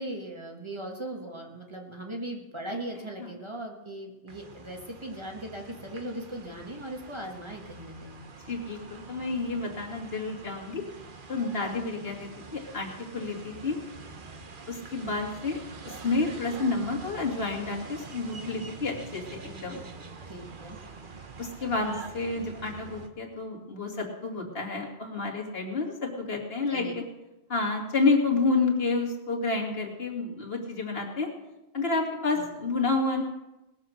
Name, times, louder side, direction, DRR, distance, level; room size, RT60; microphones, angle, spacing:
voice 1, 0.0-8.2 20.3-20.8 26.7-26.9 32.4-32.5, right 1 dB, 25° right, 0 dB, 1.9 m, -38 dB
sound 1, 4.3-23.1, right 4 dB, 55° right, 1.3 m, -45 dB
voice 2, 8.5-10.8 11.3-13.8 14.7-19.8 21.4-27.0 27.5-31.3 31.7-33.2, left 3 dB, 70° left, -1 dB, 2.6 m, -29 dB
19.5 x 7.4 x 6.5 m, 0.98 s
omnidirectional pair, 1.0 m